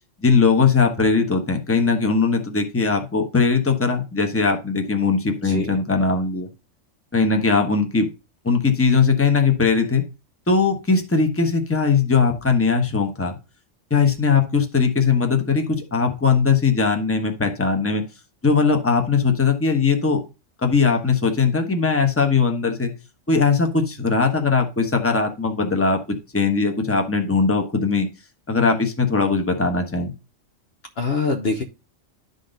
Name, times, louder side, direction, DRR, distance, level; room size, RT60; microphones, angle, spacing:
voice 1, 0.2-6.5 7.1-8.1 8.4-10.0 10.5-13.4 13.9-18.0 18.4-20.2 20.6-22.9 23.3-28.1 28.5-30.1, left 4 dB, 10° left, 4 dB, 1.0 m, -20 dB
voice 2, 5.3-5.8 31.0-31.6, left 4 dB, 55° left, 5 dB, 1.0 m, -24 dB
11.5 x 4.0 x 3.9 m, 0.29 s
omnidirectional pair, 1.3 m